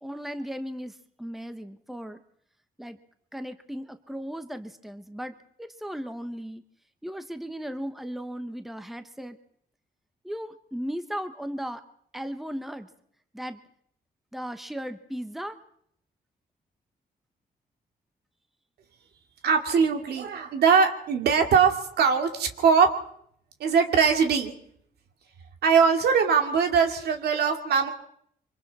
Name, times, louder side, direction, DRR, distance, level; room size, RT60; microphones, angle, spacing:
voice 1, 0.0-2.2 2.8-3.0 3.3-6.6 7.0-9.4 10.2-11.8 12.1-12.9 13.3-13.6 14.3-15.6, equal, ahead, 9 dB, 1.1 m, -36 dB
voice 2, 19.4-22.9 23.6-24.5 25.6-27.9, right 6 dB, 80° right, 5 dB, 2.5 m, -21 dB
25.5 x 25.0 x 4.2 m, 0.67 s
cardioid pair, 140°, 16 cm